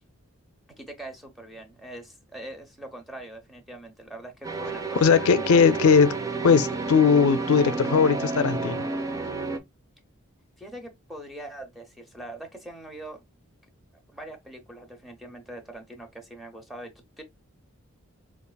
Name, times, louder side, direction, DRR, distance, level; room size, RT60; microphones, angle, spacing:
voice 1, 0.8-5.0 10.6-13.2 14.1-17.2, right 1 dB, ahead, 0.8 m, -42 dB
sound 1, 4.4-9.6, right 4 dB, 15° right, 0.3 m, -30 dB
voice 2, 5.0-6.2 6.4-8.8, left 6 dB, 80° left, 0.4 m, -19 dB
5.2 x 2.4 x 2.2 m
head